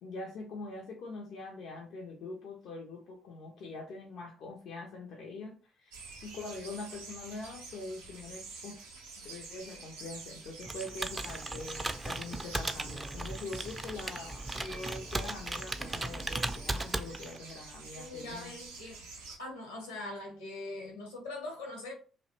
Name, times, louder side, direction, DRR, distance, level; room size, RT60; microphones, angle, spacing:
voice 1, 0.0-6.0 6.2-8.8 9.2-18.5, left 2 dB, 65° left, 1 dB, 0.4 m, -43 dB
sound 1, 5.9-19.4, right 4 dB, 85° right, 0.5 m, -47 dB
Computer keyboard, 10.6-17.5, right 2 dB, 20° right, 0.3 m, -37 dB
voice 2, 17.9-19.0 19.4-21.9, left 2 dB, 85° left, 0 dB, 0.9 m, -42 dB
2.4 x 2.1 x 2.7 m, 0.38 s
hypercardioid pair, 45°, 0 cm